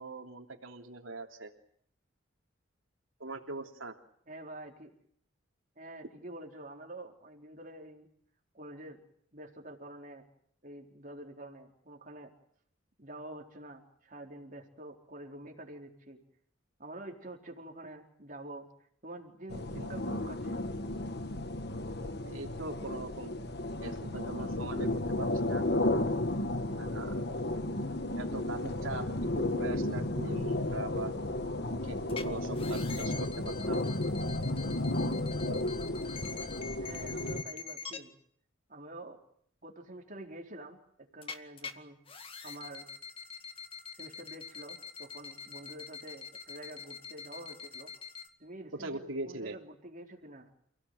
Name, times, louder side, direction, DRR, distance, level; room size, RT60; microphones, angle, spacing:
voice 1, 0.0-1.5 3.2-4.0 22.2-23.4 23.7-25.7 26.8-27.2 28.2-29.1 29.3-31.3 31.8-33.8 48.8-49.6, right 2 dB, 85° right, 3 dB, 3.2 m, -41 dB
voice 2, 4.3-4.9 5.8-8.1 8.5-9.0 9.3-10.2 10.6-12.3 13.0-16.2 16.8-18.7 19.0-20.6 36.8-38.1 38.7-39.2 39.6-42.0 42.4-42.9 43.9-47.9 48.4-50.5, right 1 dB, 40° right, 2 dB, 4.2 m, -47 dB
sound 1, 19.5-37.4, left 1 dB, 55° left, 1.5 m, -33 dB
sound 2, 32.1-32.2 32.5-38.0 41.2-41.7 42.1-48.3, left 6 dB, 25° left, 2.0 m, -45 dB
30.0 x 17.5 x 9.5 m, 0.67 s
head